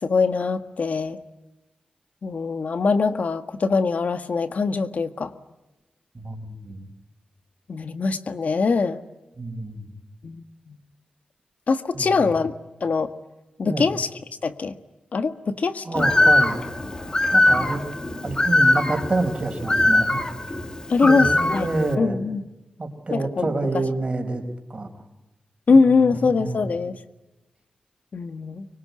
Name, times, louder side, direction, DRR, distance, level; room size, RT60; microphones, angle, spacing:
voice 1, 0.0-1.2 2.2-5.3 7.7-9.0 10.2-10.8 11.7-12.5 12.8-13.1 13.6-14.1 14.4-14.7 15.1-16.1 20.9-21.7 22.0-22.4 23.1-23.7 25.7-27.0 28.1-28.7, left 4 dB, 65° left, 9 dB, 1.6 m, -22 dB
voice 2, 6.1-6.9 9.4-9.9 11.9-12.3 13.7-13.9 15.8-16.6 17.3-17.8 18.2-20.2 21.0-22.2 22.8-24.4 24.7-24.9 25.7-26.6, right 2 dB, 40° right, 6 dB, 5.0 m, -27 dB
Bird, 16.0-21.9, left 2 dB, 30° left, 2.2 m, -21 dB
25.0 x 24.0 x 9.8 m, 1.0 s
cardioid pair, 70°, 3 cm